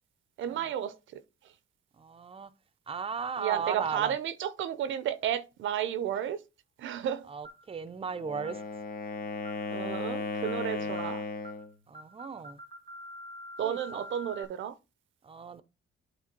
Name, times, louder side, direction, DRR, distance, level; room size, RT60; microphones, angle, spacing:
voice 1, 0.4-1.2 3.4-6.4 6.8-7.3 9.7-11.2 13.6-14.7, right 10 dB, 75° right, 0.7 m, -32 dB
voice 2, 2.0-2.5 2.9-4.1 7.3-8.6 10.7-11.1 11.9-12.6 13.6-14.0 15.2-15.6, right 6 dB, 30° right, 0.7 m, -37 dB
sound 1, 7.4-7.7 8.4-8.7 9.4-9.7 10.4-10.7 10.9-11.2 11.4-11.7 11.9-14.4, left 1 dB, 25° left, 1.5 m, -46 dB
Wind instrument woodwind instrument, 8.1-11.7, left 4 dB, 45° left, 1.0 m, -35 dB
8.6 x 3.3 x 4.5 m
cardioid pair, 90°, 20 cm